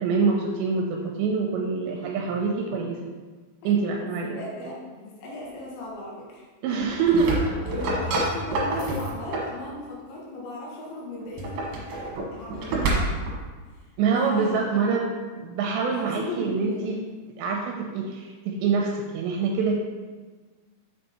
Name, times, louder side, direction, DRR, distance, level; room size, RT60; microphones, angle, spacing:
voice 1, 0.0-3.0 3.6-4.4 6.6-7.4 14.0-15.1 15.3-17.0 17.4-19.8, right 5 dB, 85° right, 0 dB, 2.8 m, -25 dB
voice 2, 3.6-6.4 7.7-11.6 11.9-13.1 13.7-14.6 15.9-16.9, left 1 dB, 75° left, -4 dB, 3.7 m, -37 dB
sound 1, 6.8-9.6 11.2-13.4, right 2 dB, 65° right, 2.5 m, -28 dB
6.8 x 5.6 x 4.2 m, 1.4 s
omnidirectional pair, 5.3 m